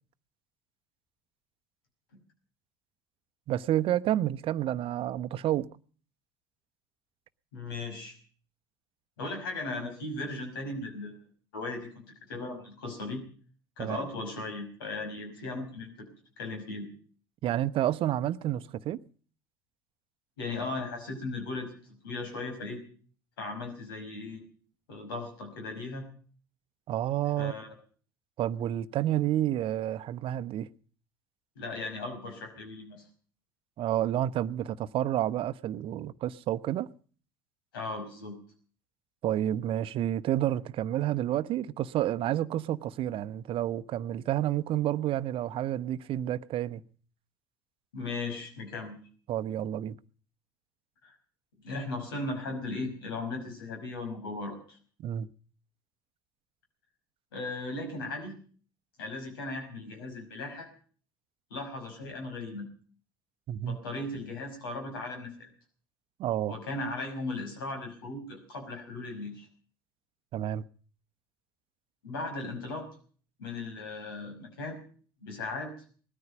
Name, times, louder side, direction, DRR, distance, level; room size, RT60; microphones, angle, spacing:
voice 1, 3.5-5.7 13.8-14.0 17.4-19.0 26.9-27.5 28.4-30.7 33.8-36.9 39.2-46.8 49.3-50.0 55.0-55.3 63.5-63.8 66.2-66.6 70.3-70.6, right 12 dB, 50° right, 0.9 m, -29 dB
voice 2, 7.5-8.2 9.2-11.2 11.5-13.2 13.8-16.1 16.4-16.9 20.4-21.7 22.0-22.8 23.4-24.4 24.9-26.0 27.4-27.7 31.6-33.0 37.7-38.4 47.9-49.0 51.0-51.1 51.6-54.8 57.3-58.3 59.0-60.7 61.5-62.7 63.6-65.5 66.5-69.5 72.0-72.9 73.4-74.8 75.2-75.7, left 2 dB, 75° left, 5.6 m, -37 dB
20.0 x 13.5 x 5.2 m
hypercardioid pair, 65°, 12 cm